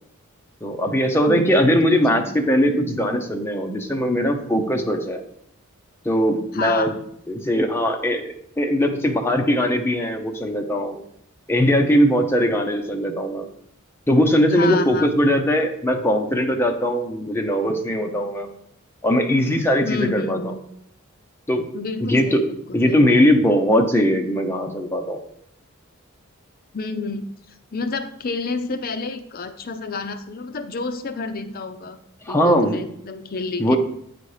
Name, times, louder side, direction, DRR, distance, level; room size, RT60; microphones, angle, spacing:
voice 1, 0.6-5.2 6.0-6.9 7.3-11.0 11.5-13.5 14.1-18.5 19.0-20.5 21.5-21.6 22.1-22.4 22.7-25.2 32.2-32.8 33.6-33.8, equal, 10° left, 3 dB, 0.7 m, -20 dB
voice 2, 1.3-2.3 6.5-7.0 14.5-15.1 19.8-20.6 21.7-23.0 26.7-32.0 32.3-33.8, left 3 dB, 45° left, 9 dB, 0.5 m, -29 dB
8.7 x 4.2 x 4.9 m, 0.72 s
head